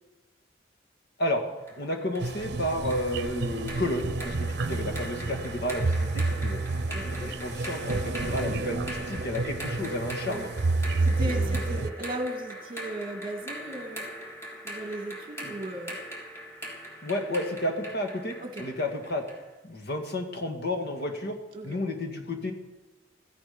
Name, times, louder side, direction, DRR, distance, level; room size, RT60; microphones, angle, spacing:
sound 1, 1.7-19.5, equal, 15° left, 3.5 m, -41 dB
voice 1, 1.8-6.6 7.2-10.5 11.0-11.9 15.4-15.5 17.0-19.2 19.6-21.4 21.6-22.5, left 1 dB, 60° left, 4 dB, 2.0 m, -32 dB
sound 2, 2.2-11.9, right 3 dB, 60° right, 0.7 m, -30 dB
voice 2, 6.9-7.4 10.2-10.5 11.0-14.1 14.6-16.0 18.4-18.7 21.5-21.8, right 1 dB, 30° right, 4 dB, 1.8 m, -36 dB
16.0 x 14.5 x 5.2 m, 1.2 s
head